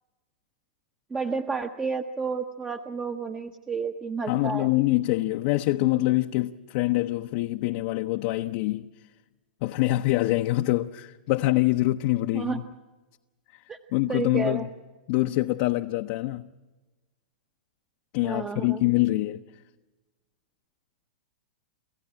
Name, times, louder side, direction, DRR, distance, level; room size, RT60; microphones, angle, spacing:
voice 1, 1.1-4.7 12.3-12.6 13.7-13.8 14.1-14.7 18.2-18.8, right 5 dB, 15° right, 0.8 m, -31 dB
voice 2, 4.3-8.9 9.6-12.6 13.5-13.6 13.9-14.7 15.1-16.4 18.1-19.4, left 18 dB, 50° left, 0.6 m, -25 dB
27.5 x 14.5 x 8.6 m
hypercardioid pair, 115°, 5 cm